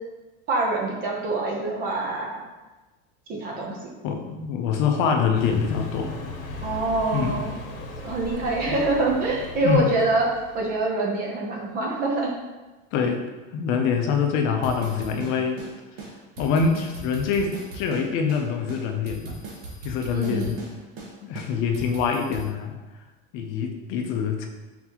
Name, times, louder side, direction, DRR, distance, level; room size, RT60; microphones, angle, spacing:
voice 1, 0.5-2.3 3.3-3.8 6.6-7.5 8.0-10.3 10.5-12.3 20.1-20.5, right 2 dB, 30° right, -1 dB, 0.7 m, -25 dB
voice 2, 4.0-6.2 7.1-7.5 9.6-9.9 12.9-13.2 13.5-15.6 16.4-19.4 19.8-20.6 21.2-22.8 23.3-24.5, left 6 dB, 45° left, 4 dB, 0.6 m, -25 dB
Car passing by, 5.3-10.9, left 1 dB, 80° left, 0.9 m, -37 dB
sound 1, 14.6-15.7 16.0-16.1 16.4-18.0 18.3-18.4 18.7-20.7 21.0-21.1 21.4-22.5, right 2 dB, 90° right, 1.4 m, -39 dB
4.4 x 4.0 x 2.9 m, 1.2 s
cardioid pair, 170°, 29 cm